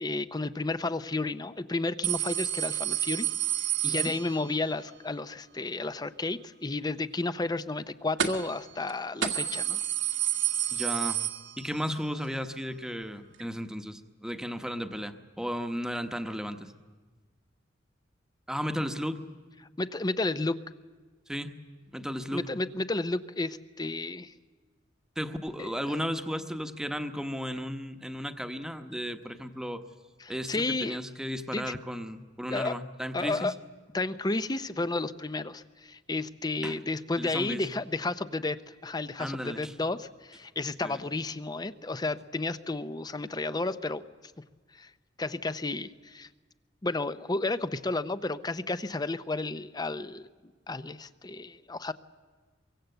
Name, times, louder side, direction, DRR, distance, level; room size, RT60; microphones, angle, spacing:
voice 1, 0.0-3.3 3.8-9.8 19.8-20.6 22.3-24.3 25.6-25.7 30.5-31.0 31.5-31.7 32.5-32.8 33.1-33.5 33.9-44.0 44.8-44.9 45.2-46.3 46.8-50.3 50.7-51.9, left 2 dB, 20° left, 13 dB, 0.7 m, -32 dB
sound 1, 2.0-4.7 8.2-8.6 8.9-9.0 9.2-11.9 12.3-12.4 13.4-13.5, right 10 dB, 75° right, 1.8 m, -30 dB
voice 2, 10.7-11.2 11.6-16.7 18.5-19.2 21.3-21.6 21.9-22.5 25.2-29.8 30.3-33.5 36.6-36.8 37.2-37.7 39.2-39.8 40.8-41.0, equal, 5° right, 7 dB, 1.1 m, -35 dB
23.5 x 23.5 x 7.9 m, 1.4 s
head